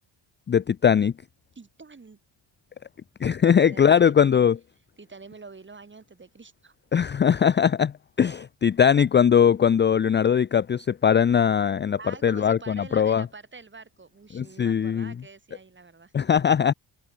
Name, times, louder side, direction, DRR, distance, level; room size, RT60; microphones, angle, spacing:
voice 1, 0.5-1.1 3.2-4.6 6.9-13.3 14.3-15.1 16.1-16.7, left 8 dB, 25° left, 0.4 m, -20 dB
voice 2, 1.5-2.2 3.5-4.5 5.0-6.7 12.0-16.1, right 4 dB, 25° right, 4.6 m, -46 dB
cardioid pair, 125°, 45 cm